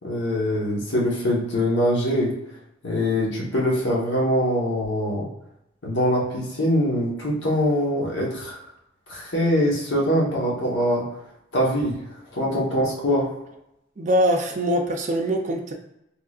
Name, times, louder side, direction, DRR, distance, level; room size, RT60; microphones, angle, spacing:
voice 1, 0.0-2.3 2.8-5.3 5.8-8.6 9.1-11.0 11.5-12.0 12.3-13.3, equal, 70° left, -4 dB, 1.2 m, -23 dB
voice 2, 14.0-15.7, equal, 40° right, 2 dB, 0.4 m, -22 dB
3.6 x 3.0 x 2.4 m, 0.83 s
head